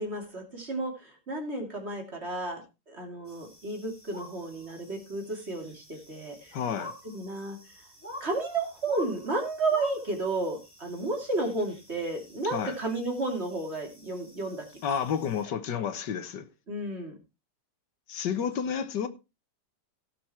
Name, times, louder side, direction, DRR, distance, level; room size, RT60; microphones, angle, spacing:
voice 1, 0.0-6.6 7.0-7.6 8.2-14.7 16.7-17.1, right 2 dB, 35° right, 3.1 m, -32 dB
sound 1, 3.3-15.4, left 1 dB, 5° left, 3.2 m, -49 dB
voice 2, 6.5-6.9 12.5-12.8 14.8-16.5 18.1-19.1, left 7 dB, 75° left, 1.7 m, -30 dB
17.0 x 6.1 x 4.4 m
omnidirectional pair, 1.9 m